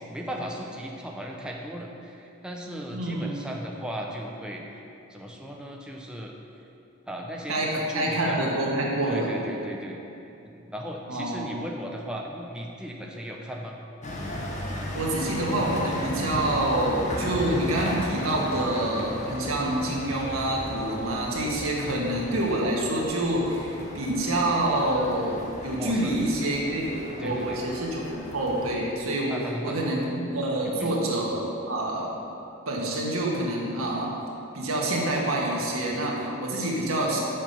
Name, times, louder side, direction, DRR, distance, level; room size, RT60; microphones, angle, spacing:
voice 1, 0.0-4.8 5.1-6.3 7.1-8.4 9.1-10.0 10.4-13.8 21.8-22.0 25.8-26.2 27.2-27.6 29.3-29.9 30.6-31.0, equal, 5° right, -1 dB, 0.6 m, -37 dB
voice 2, 2.9-3.4 7.5-9.3 11.1-11.5 14.9-29.4 29.6-32.1 32.6-34.1 34.5-37.2, right 1 dB, 85° right, -3 dB, 1.7 m, -27 dB
sound 1, 14.0-28.8, left 1 dB, 35° left, 1.1 m, -35 dB
7.4 x 5.7 x 7.0 m, 2.8 s
head